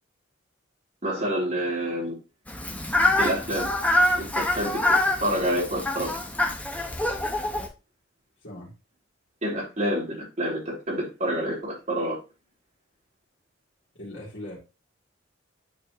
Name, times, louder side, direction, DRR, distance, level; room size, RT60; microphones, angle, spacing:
voice 1, 1.0-2.2 3.2-3.7 4.2-4.8 5.2-6.2 9.4-12.2, equal, 40° right, 3.8 m, -28 dB
Fowl, 2.5-7.7, left 1 dB, 10° left, 1.1 m, -25 dB
voice 2, 8.4-8.7 13.9-14.6, left 1 dB, 60° left, 2.6 m, -39 dB
9.4 x 4.5 x 3.0 m
head